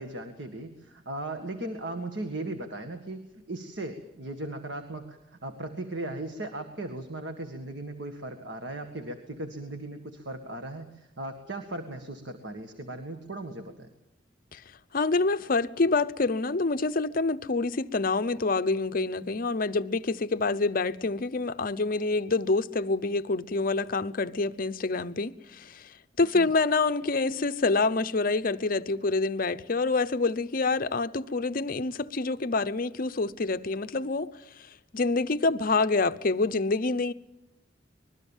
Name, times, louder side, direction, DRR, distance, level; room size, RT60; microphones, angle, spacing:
voice 1, 0.0-13.9 26.3-26.5, right 2 dB, 70° right, 1.8 m, -37 dB
voice 2, 14.9-25.9 26.2-34.3 34.9-37.1, left 3 dB, 50° left, 0.8 m, -27 dB
25.0 x 21.0 x 7.3 m
head